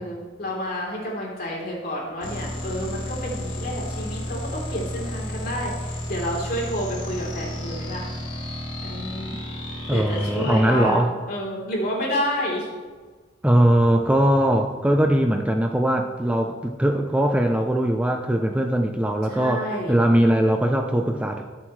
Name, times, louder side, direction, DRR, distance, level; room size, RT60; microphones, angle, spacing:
voice 1, 0.0-8.1 8.8-9.4 9.9-12.7 19.3-20.0, equal, 50° left, -4 dB, 3.6 m, -30 dB
sound 1, 2.2-10.9, left 1 dB, 65° left, 3.4 m, -32 dB
voice 2, 9.9-11.1 13.4-21.4, right 1 dB, 5° right, 3 dB, 0.5 m, -20 dB
21.0 x 7.3 x 3.2 m, 1.4 s
head